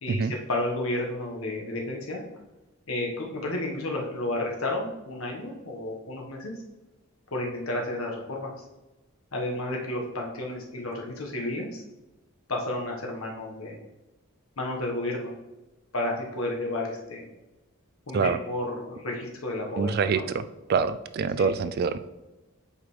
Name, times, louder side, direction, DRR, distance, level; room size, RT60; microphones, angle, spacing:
voice 1, 0.0-2.2 2.9-6.5 7.3-8.6 9.3-11.8 12.5-13.8 14.6-15.3 15.9-17.3 18.1-20.2 21.4-21.5, left 1 dB, 70° left, -1 dB, 1.3 m, -32 dB
voice 2, 19.8-20.4 20.7-22.0, right 5 dB, 45° right, 13 dB, 0.3 m, -25 dB
8.2 x 5.1 x 3.2 m, 1.1 s
head